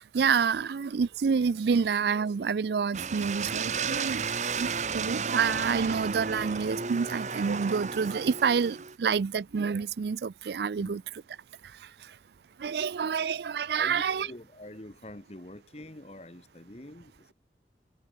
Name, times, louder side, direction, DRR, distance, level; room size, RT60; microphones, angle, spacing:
voice 1, 0.1-4.2 4.6-11.0 12.6-14.3, right 6 dB, 70° right, 0.4 m, -28 dB
sound 1, 2.9-9.0, right 5 dB, 40° right, 1.0 m, -33 dB
voice 2, 12.6-13.1 13.7-17.3, left 1 dB, 35° left, 1.6 m, -46 dB
head